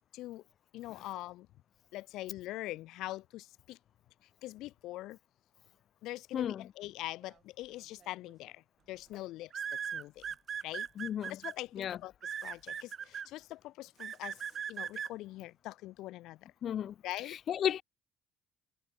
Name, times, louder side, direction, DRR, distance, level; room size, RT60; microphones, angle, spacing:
voice 1, 0.1-0.4 0.7-1.5 1.9-3.8 4.4-5.2 6.0-10.3 10.6-10.9 11.3-14.4 14.7-16.5 17.0-17.4, left 16 dB, 75° left, 5.5 m, -43 dB
voice 2, 6.3-6.6 11.0-11.4 11.7-12.0 16.6-16.9 17.5-17.8, left 9 dB, 40° left, 0.3 m, -33 dB
sound 1, 8.0-8.3 9.5-11.5 12.2-13.3 14.0-15.1, right 8 dB, 35° right, 1.0 m, -38 dB
cardioid pair, 170°, 0 cm